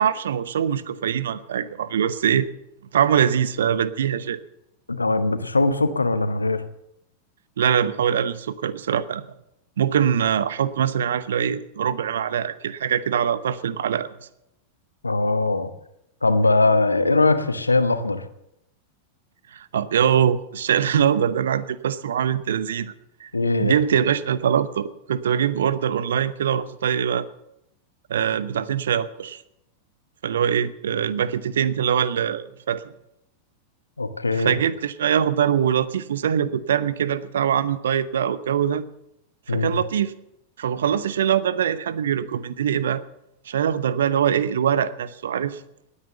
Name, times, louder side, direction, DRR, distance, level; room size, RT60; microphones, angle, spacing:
voice 1, 0.0-2.5 2.9-4.4 7.6-9.2 9.8-14.1 19.5-22.9 23.2-23.3 23.6-27.3 28.1-29.4 30.2-32.8 34.3-38.8 39.5-40.1 40.6-43.0 43.5-45.6, right 8 dB, 65° right, 16 dB, 0.8 m, -23 dB
voice 2, 4.9-6.6 15.0-15.7 16.2-18.2 23.3-24.1 34.0-34.5 39.5-39.7, left 2 dB, 80° left, 11 dB, 1.1 m, -21 dB
19.0 x 9.8 x 6.9 m, 0.82 s
figure-of-eight pair, 90°, 0 cm